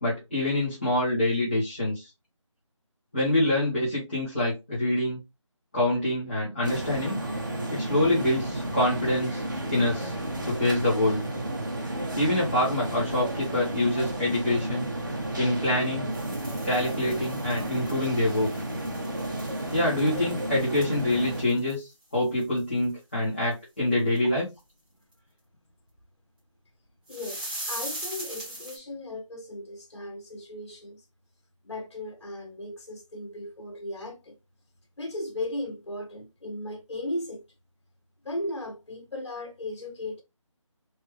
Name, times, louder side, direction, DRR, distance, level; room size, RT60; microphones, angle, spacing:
voice 1, 0.0-2.1 3.1-5.2 5.7-7.2 7.7-9.4 9.7-10.1 10.4-11.2 12.2-14.9 15.4-16.1 16.6-18.5 19.7-24.5, left 1 dB, 20° left, 1.2 m, -26 dB
sound 1, 6.6-21.4, right 1 dB, 35° right, 0.9 m, -32 dB
sound 2, 16.1-22.0 22.4-22.6 22.8-22.9 23.5-23.6 24.2-24.3 27.1-28.8, right 1 dB, 15° right, 1.2 m, -41 dB
voice 2, 27.1-27.4 27.7-31.0 31.6-34.3 35.0-37.4 38.2-40.2, left 1 dB, 55° left, 1.4 m, -36 dB
3.5 x 3.0 x 3.1 m
figure-of-eight pair, 175°, 17 cm